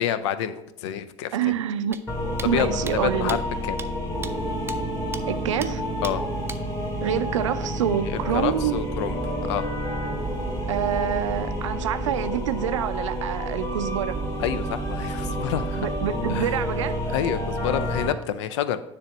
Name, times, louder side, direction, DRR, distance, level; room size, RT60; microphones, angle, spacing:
voice 1, 0.0-1.5 2.4-3.8 6.0-6.2 8.0-9.2 9.5-9.7 14.4-15.9 16.3-16.6 17.1-18.8, left 10 dB, 65° left, 0.5 m, -28 dB
voice 2, 1.3-2.0 2.4-3.4 5.3-5.8 7.0-8.8 10.7-14.1 15.8-17.1, right 10 dB, 75° right, 0.4 m, -27 dB
sound 1, 1.9-2.0 2.4-2.5 2.9-3.0 3.3-3.4 3.8-3.9 4.2-4.3 4.7-4.8 5.1-5.2 5.6-5.7 6.0-6.1 6.5-6.6, right 4 dB, 15° right, 0.5 m, -36 dB
sound 2, 2.1-18.1, equal, 20° left, 1.7 m, -29 dB
9.7 x 3.4 x 5.1 m
figure-of-eight pair, 65°, 16 cm